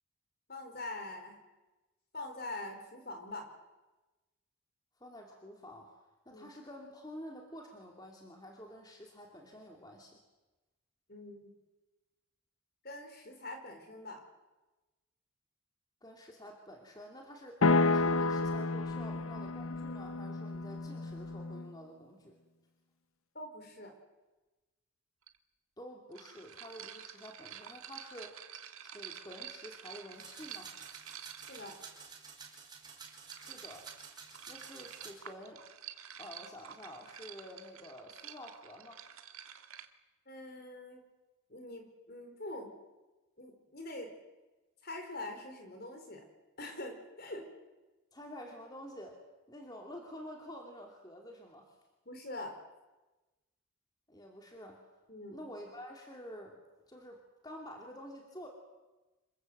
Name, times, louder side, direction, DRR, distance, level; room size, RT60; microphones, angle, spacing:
voice 1, 0.5-1.4 2.1-3.5 6.3-6.5 11.1-11.5 12.8-14.2 23.3-23.9 31.5-31.8 40.3-41.0 41.5-42.7 43.4-44.1 44.8-46.2 46.6-47.5 52.1-52.6 55.1-55.5, left 2 dB, 45° left, 5 dB, 4.6 m, -44 dB
voice 2, 5.0-5.9 6.3-10.2 16.0-22.4 25.8-28.5 28.8-30.7 33.3-33.9 34.5-35.6 36.2-39.0 48.1-49.2 49.5-51.8 54.1-54.8 55.3-56.6 56.9-58.5, equal, 20° left, 1 dB, 2.7 m, -49 dB
sound 1, 17.6-21.7, left 3 dB, 80° left, 0.9 m, -31 dB
sound 2, 25.3-25.4 26.1-32.0 32.9-39.9, right 9 dB, 80° right, 1.7 m, -49 dB
sound 3, 30.1-35.1, right 5 dB, 20° right, 4.7 m, -51 dB
27.0 x 22.0 x 7.9 m, 1.1 s
head